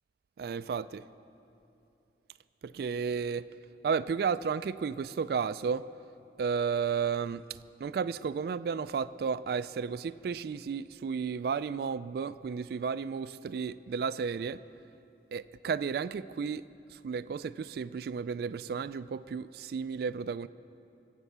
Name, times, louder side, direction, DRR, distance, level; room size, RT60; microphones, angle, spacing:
voice 1, 0.4-1.0 2.6-3.4 3.8-5.9 6.4-14.6 15.3-16.6 17.0-20.5, right 6 dB, 60° right, 14 dB, 0.3 m, -33 dB
23.0 x 8.1 x 6.8 m, 2.7 s
head